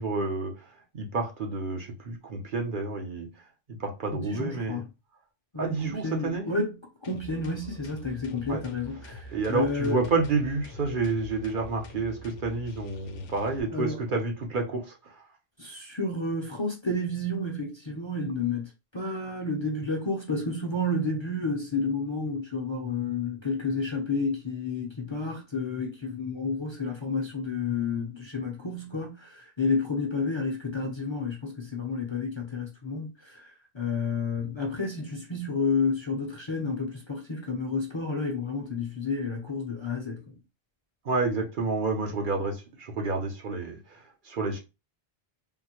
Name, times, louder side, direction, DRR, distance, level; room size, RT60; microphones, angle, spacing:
voice 1, 0.0-3.3 3.8-4.8 5.6-6.5 8.5-8.6 9.3-15.1 41.0-44.6, right 3 dB, 55° right, 0.9 m, -29 dB
voice 2, 4.1-4.8 5.5-6.8 7.0-10.0 13.7-14.0 15.6-40.2, left 3 dB, 35° left, 0.5 m, -30 dB
sound 1, 7.0-13.6, equal, 70° left, 0.7 m, -45 dB
3.6 x 2.1 x 2.8 m
omnidirectional pair, 1.0 m